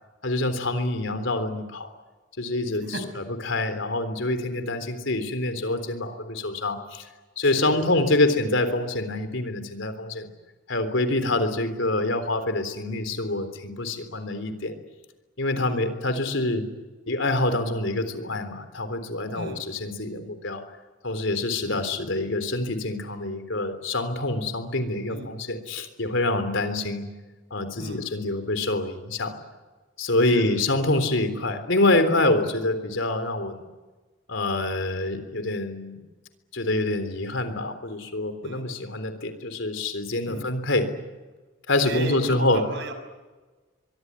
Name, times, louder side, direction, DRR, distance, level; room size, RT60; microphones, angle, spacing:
voice 1, 0.2-1.9 2.4-7.1 7.4-10.3 10.7-14.7 15.4-16.6 17.1-20.6 21.0-27.0 27.5-29.4 30.0-33.6 34.3-36.0 36.5-40.9 41.7-42.6, left 2 dB, 70° left, 9 dB, 3.6 m, -26 dB
voice 2, 7.4-8.3 15.6-15.8 19.3-19.6 21.6-21.8 25.1-25.3 27.8-28.0 30.3-30.5 38.4-38.6 40.3-40.5 41.8-42.9, right 1 dB, 60° right, 8 dB, 5.6 m, -35 dB
24.0 x 24.0 x 9.9 m, 1.3 s
head